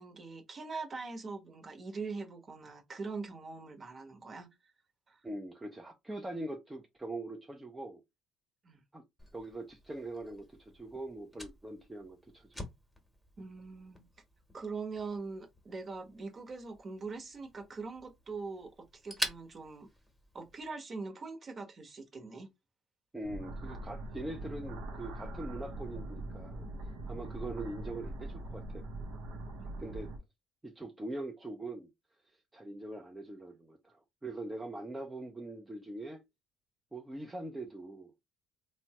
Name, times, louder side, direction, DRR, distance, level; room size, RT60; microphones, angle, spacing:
voice 1, 0.0-4.5 5.1-5.2 8.6-8.8 13.4-14.1 14.5-19.9 20.3-22.5 29.6-29.8, right 4 dB, 40° right, 1.0 m, -42 dB
voice 2, 5.2-8.0 8.9-9.0 9.3-12.7 23.1-26.6 27.1-28.9 29.8-30.1 30.6-31.9 32.5-36.2 36.9-38.1, right 2 dB, 15° right, 0.6 m, -42 dB
Fire, 9.2-20.7, equal, ahead, 1.0 m, -47 dB
sound 1, 23.2-30.2, right 2 dB, 75° right, 0.7 m, -42 dB
3.0 x 2.2 x 2.9 m
supercardioid pair, 85°, 0 cm